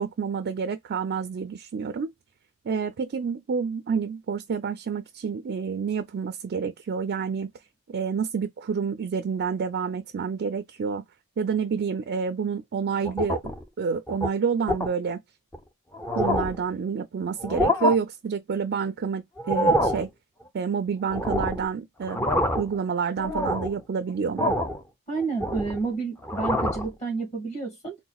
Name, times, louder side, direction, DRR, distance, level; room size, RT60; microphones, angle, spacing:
voice 1, 0.0-2.1 2.6-7.5 7.9-11.0 11.4-13.5 13.8-15.2 16.1-20.1 20.5-22.3 22.6-24.6, right 6 dB, 45° right, 0.4 m, -28 dB
sound 1, 13.1-13.6 14.1-14.3 14.7-14.9 15.5-15.6 15.9-16.6 17.4-18.0 19.4-20.1 21.1-21.7 22.0-22.8 23.2-23.8 24.4-24.8 25.2-25.9 26.2-26.9, equal, 10° left, 0.5 m, -26 dB
voice 2, 25.1-28.0, right 4 dB, 30° left, 1.5 m, -30 dB
4.0 x 2.1 x 2.3 m
head